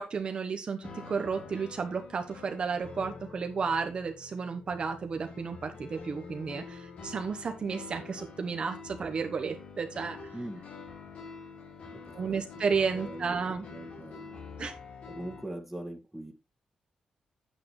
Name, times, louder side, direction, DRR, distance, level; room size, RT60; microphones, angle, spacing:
voice 1, 0.0-10.2 12.1-13.7 14.6-14.7, right 5 dB, 50° right, 6 dB, 1.0 m, -32 dB
sound 1, 0.8-15.4, left 4 dB, 60° left, 2.3 m, -46 dB
voice 2, 11.9-12.6 12.9-13.4 13.7-14.4 15.1-16.3, right 1 dB, 5° right, 2 dB, 1.9 m, -42 dB
8.9 x 8.6 x 3.2 m, 0.27 s
cardioid pair, 100°, 2 cm